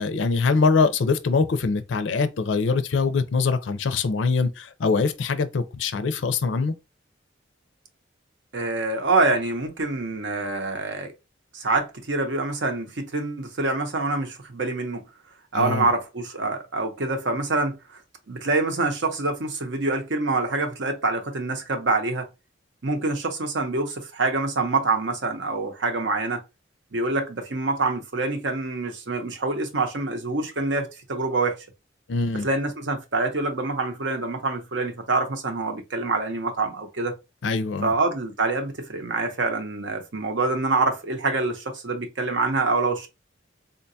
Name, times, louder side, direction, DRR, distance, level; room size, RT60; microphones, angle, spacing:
voice 1, 0.0-6.7 15.5-15.9 32.1-32.5 37.4-37.9, left 4 dB, 70° left, 0.4 m, -23 dB
voice 2, 8.5-11.1 11.5-15.0 15.5-17.8 18.3-22.3 22.8-26.4 26.9-31.7 32.4-37.1 37.8-43.1, right 3 dB, 70° right, 0.8 m, -26 dB
3.8 x 2.2 x 2.6 m
head